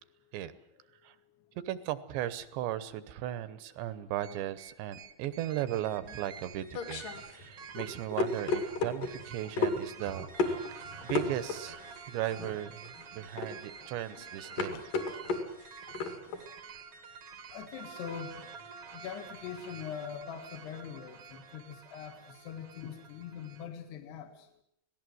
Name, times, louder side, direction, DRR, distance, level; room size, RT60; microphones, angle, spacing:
voice 1, 1.7-10.7 11.0-11.8 12.1-12.8 13.1-14.8, right 12 dB, 75° right, 14 dB, 3.1 m, -36 dB
sound 1, 4.2-23.7, right 6 dB, 55° right, 1.6 m, -49 dB
sound 2, 6.1-16.5, left 3 dB, 50° left, 3.6 m, -35 dB
voice 2, 14.7-15.1 17.5-18.6 18.9-24.5, left 8 dB, 65° left, 6 dB, 3.6 m, -43 dB
26.0 x 18.0 x 7.8 m, 0.73 s
omnidirectional pair, 5.3 m